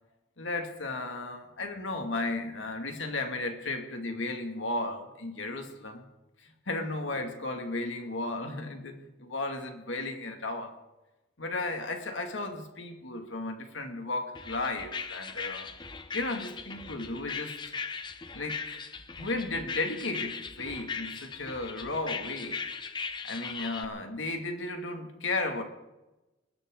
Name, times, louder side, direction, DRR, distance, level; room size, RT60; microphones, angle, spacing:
voice 1, 0.4-6.0 6.4-10.7 11.4-15.7 16.1-17.5 18.3-18.9 19.2-22.6 23.2-25.6, left 2 dB, 85° left, 4 dB, 2.4 m, -34 dB
sound 1, 14.3-23.8, left 5 dB, 25° left, 0.9 m, -39 dB
21.0 x 17.0 x 3.9 m, 1.0 s
head